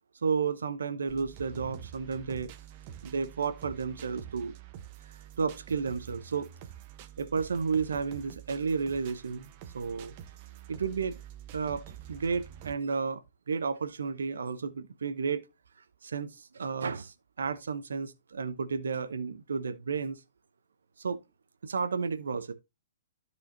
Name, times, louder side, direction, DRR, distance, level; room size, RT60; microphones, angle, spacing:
voice 1, 0.2-2.5 3.0-4.5 5.4-6.5 7.2-10.1 10.7-11.2 11.5-15.5 16.0-20.2 21.0-21.2 21.6-22.5, right 5 dB, 80° right, 0.9 m, -32 dB
sound 1, 1.1-12.7, right 10 dB, 40° right, 1.1 m, -47 dB
13.0 x 4.8 x 2.8 m
hypercardioid pair, 125°, 0 cm